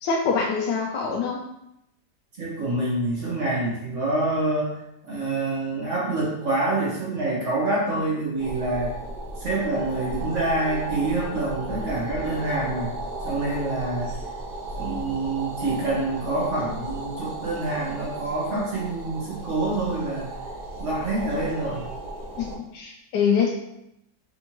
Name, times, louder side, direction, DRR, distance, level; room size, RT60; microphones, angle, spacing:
voice 1, 0.0-1.4 22.4-23.5, left 6 dB, 75° left, -2 dB, 1.2 m, -24 dB
voice 2, 2.4-4.8 5.1-8.9 9.4-12.9 13.2-14.1 14.7-20.3 20.8-21.9, right 2 dB, 40° right, -6 dB, 1.6 m, -26 dB
sound 1, 8.4-22.6, right 2 dB, 75° right, 1.5 m, -35 dB
4.5 x 3.5 x 2.9 m, 0.84 s
omnidirectional pair, 2.0 m